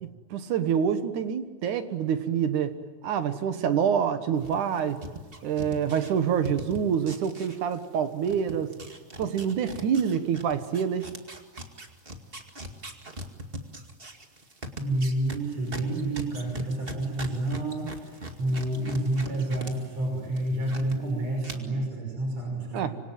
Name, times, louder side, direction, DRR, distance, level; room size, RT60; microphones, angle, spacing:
voice 1, 0.3-2.8 3.0-5.0 5.4-8.7 9.2-11.1 22.7-22.9, right 8 dB, 75° right, 9 dB, 2.9 m, -26 dB
sound 1, 4.4-8.0 8.2-19.7 20.0-21.0 21.4-21.5, right 1 dB, 20° right, 1.9 m, -40 dB
voice 2, 14.8-22.9, right 1 dB, 55° right, 1 dB, 7.1 m, -29 dB
26.0 x 25.5 x 9.1 m, 1.4 s
omnidirectional pair, 3.6 m